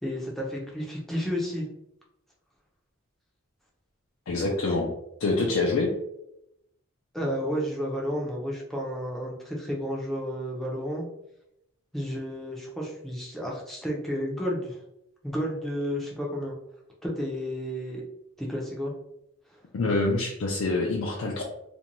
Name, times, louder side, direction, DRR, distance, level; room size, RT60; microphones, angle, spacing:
voice 1, 0.0-1.7 7.1-11.0 11.9-14.8 15.2-16.5 17.0-18.0 18.4-18.9, equal, ahead, -3 dB, 0.5 m, -31 dB
voice 2, 4.3-4.9 5.2-5.9 19.7-21.4, left 3 dB, 65° left, -2 dB, 0.4 m, -26 dB
2.5 x 2.2 x 2.9 m, 0.81 s
head